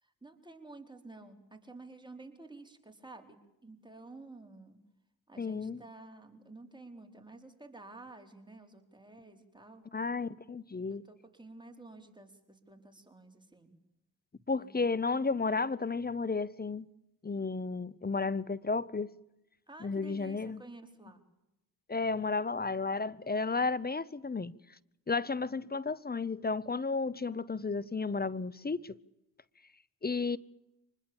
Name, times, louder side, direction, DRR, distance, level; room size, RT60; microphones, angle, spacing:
voice 1, 0.0-4.8 5.3-9.9 10.9-13.7 14.6-14.8 19.7-21.2, right 2 dB, 10° right, 4.5 m, -51 dB
voice 2, 5.4-5.8 9.9-11.0 14.5-16.9 17.2-19.1 19.8-20.6 21.9-24.6 25.1-29.0 30.0-30.4, left 4 dB, 20° left, 0.9 m, -33 dB
25.0 x 20.5 x 7.2 m
supercardioid pair, 50°, 43 cm